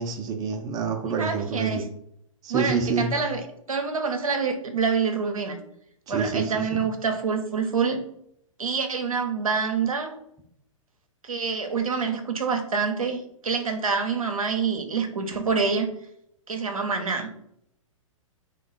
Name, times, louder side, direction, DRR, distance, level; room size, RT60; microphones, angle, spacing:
voice 1, 0.0-1.8 2.4-3.1 6.1-6.8, right 5 dB, 20° right, 3 dB, 0.5 m, -27 dB
voice 2, 1.2-1.9 2.5-5.6 6.1-8.0 8.6-10.1 11.2-15.9 16.5-17.3, right 5 dB, 90° right, 5 dB, 0.6 m, -26 dB
3.0 x 2.3 x 3.7 m, 0.74 s
figure-of-eight pair, 115°, 17 cm